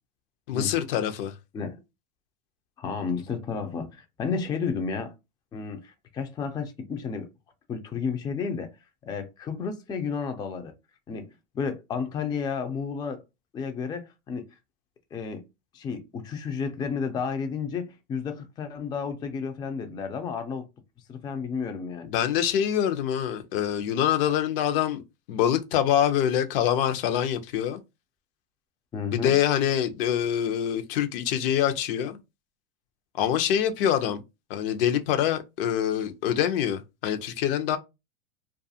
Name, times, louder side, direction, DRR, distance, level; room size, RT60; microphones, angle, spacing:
voice 1, 0.5-1.3 22.0-25.0 25.3-27.8 29.1-32.2 33.2-34.2 34.5-37.8, left 10 dB, 70° left, 0.6 m, -25 dB
voice 2, 2.8-5.1 5.5-7.3 7.7-8.7 9.0-10.7 11.1-13.2 13.5-14.5 15.1-15.4 15.7-20.7 21.1-22.1 28.9-29.4, left 5 dB, 15° left, 0.3 m, -32 dB
2.4 x 2.3 x 2.6 m
supercardioid pair, 120°, 30 cm